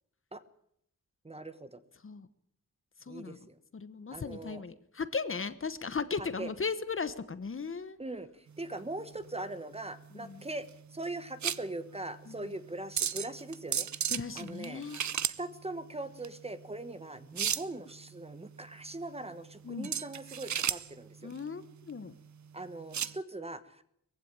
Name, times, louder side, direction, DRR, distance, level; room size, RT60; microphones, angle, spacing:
voice 1, 1.2-1.8 3.1-3.6 4.1-4.6 6.2-6.5 8.0-14.8 15.4-21.3 22.5-23.8, right 2 dB, 20° right, 12 dB, 1.2 m, -41 dB
voice 2, 3.1-3.4 3.7-8.0 10.2-10.4 12.3-12.5 14.1-15.0 19.6-19.9 21.2-22.1, left 5 dB, 40° left, 13 dB, 1.1 m, -37 dB
sound 1, 8.5-23.2, right 9 dB, 60° right, 0.8 m, -37 dB
20.5 x 15.5 x 8.9 m, 0.74 s
wide cardioid pair, 120°, 32 cm